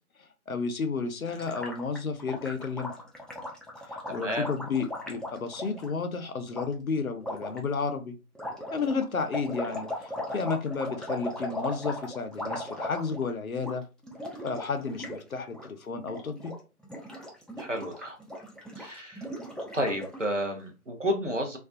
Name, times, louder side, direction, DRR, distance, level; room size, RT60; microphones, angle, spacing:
voice 1, 0.2-2.9 3.9-8.1 8.7-13.8 14.4-16.5, left 4 dB, 65° left, 8 dB, 0.5 m, -32 dB
Gurgling, 1.3-5.9 6.5-6.7 7.2-7.6 8.3-13.3 13.5-13.7 14.0-15.2 15.4-15.7 16.0-16.5 16.8-20.2, left 1 dB, ahead, 0.4 m, -38 dB
voice 2, 17.6-18.2 18.8-19.3 19.7-21.6, equal, 55° right, 3 dB, 0.7 m, -31 dB
2.4 x 2.2 x 2.5 m, 0.31 s
figure-of-eight pair, 180°, 45 cm